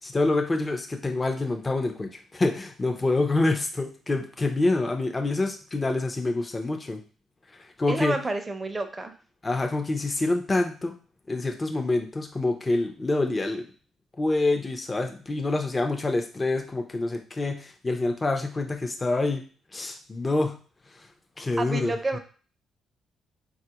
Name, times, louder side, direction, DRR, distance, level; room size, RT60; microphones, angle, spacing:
voice 1, 0.0-7.0 7.6-8.2 9.4-11.0 11.3-13.6 14.2-19.4 19.7-20.6 21.4-21.9, left 2 dB, 25° left, 3 dB, 0.5 m, -26 dB
voice 2, 7.9-9.1 21.6-22.2, right 2 dB, 25° right, 7 dB, 0.6 m, -29 dB
3.9 x 2.4 x 2.8 m, 0.39 s
cardioid pair, 90°, 0 cm